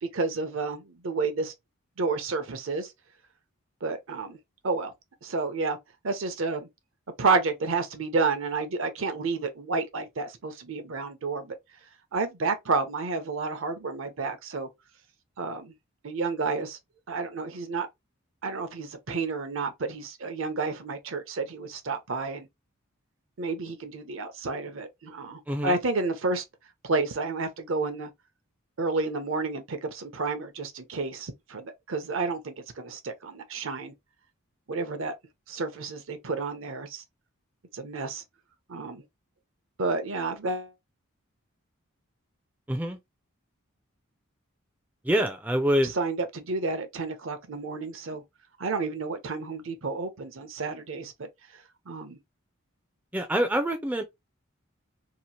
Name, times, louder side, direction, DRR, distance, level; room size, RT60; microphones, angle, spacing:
voice 1, 0.0-1.5 2.0-2.9 3.8-4.4 4.6-4.9 5.2-5.8 6.0-6.7 7.2-11.5 12.1-14.7 15.4-15.7 16.0-16.8 17.1-17.9 18.4-22.5 23.4-26.4 26.8-28.1 28.8-33.9 34.7-35.1 35.5-37.0 37.7-38.2 38.7-39.0 39.8-40.7 45.8-48.2 48.6-51.3 51.9-52.2, right 3 dB, 65° right, 0.7 m, -30 dB
voice 2, 42.7-43.0 45.0-45.9 53.1-54.0, equal, 10° right, 0.3 m, -25 dB
2.9 x 2.4 x 2.7 m
head